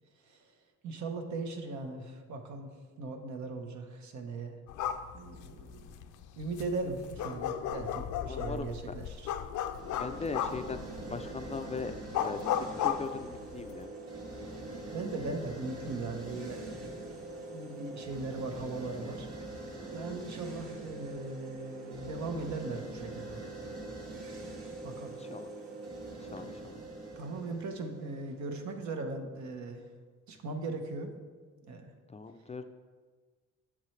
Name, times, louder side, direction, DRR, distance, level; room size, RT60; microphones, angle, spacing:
voice 1, 0.8-2.7 3.0-4.6 5.1-6.0 6.4-9.3 14.9-17.2 17.5-19.3 19.9-23.4 24.8-25.2 26.4-26.6 27.2-29.8 30.3-31.1 31.7-31.9, right 3 dB, 70° right, 5 dB, 1.0 m, -39 dB
sound 1, 4.7-13.8, left 9 dB, 80° left, 0.5 m, -36 dB
voice 2, 8.3-8.7 10.0-10.8 11.1-11.9 12.2-13.9 25.2-25.5 26.3-26.7 32.1-32.6, left 4 dB, 20° left, 8 dB, 0.4 m, -39 dB
sound 2, 9.7-28.8, right 2 dB, 50° right, 2.0 m, -43 dB
7.5 x 7.4 x 3.2 m, 1.5 s
cardioid pair, 90°, 30 cm